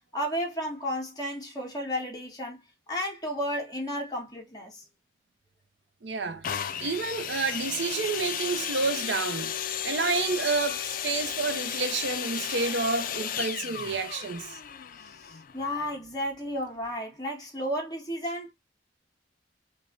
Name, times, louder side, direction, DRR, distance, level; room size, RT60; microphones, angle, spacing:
voice 1, 0.1-4.8 15.2-18.5, equal, 20° left, 1.7 m, -33 dB
voice 2, 6.0-6.5 6.8-9.5 9.8-14.6, right 4 dB, 70° right, 0.7 m, -29 dB
sound 1, 6.4-16.1 16.8-16.9, left 9 dB, 50° left, 0.4 m, -34 dB
5.1 x 2.2 x 3.2 m
head